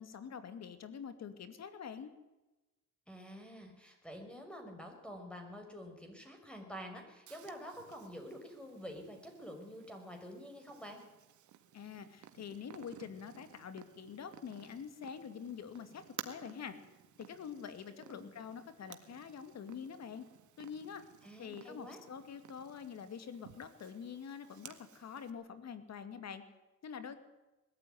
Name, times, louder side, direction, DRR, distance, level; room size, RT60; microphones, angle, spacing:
voice 1, 0.0-2.1 11.7-16.8 17.2-20.2 20.6-21.0 21.4-26.4 26.8-27.2, left 7 dB, 60° left, 10 dB, 2.4 m, -46 dB
voice 2, 3.1-11.0 17.9-18.3 21.2-22.0, equal, 5° left, 3 dB, 6.1 m, -48 dB
Purr, 7.3-25.3, right 10 dB, 75° right, 1.9 m, -56 dB
21.0 x 13.5 x 9.5 m, 1.1 s
cardioid pair, 90°, 30 cm